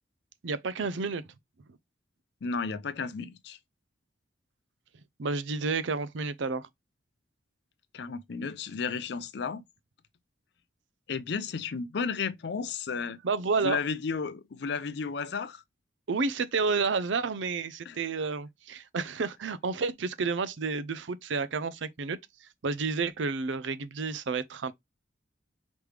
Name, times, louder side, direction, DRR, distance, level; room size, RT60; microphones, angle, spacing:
voice 1, 0.4-1.2 5.2-6.7 13.2-13.8 16.1-24.7, right 4 dB, 75° right, 0.5 m, -30 dB
voice 2, 2.4-3.6 7.9-9.6 11.1-13.2 13.6-15.6 17.9-18.0, left 5 dB, 60° left, 0.4 m, -33 dB
5.1 x 3.2 x 3.2 m
head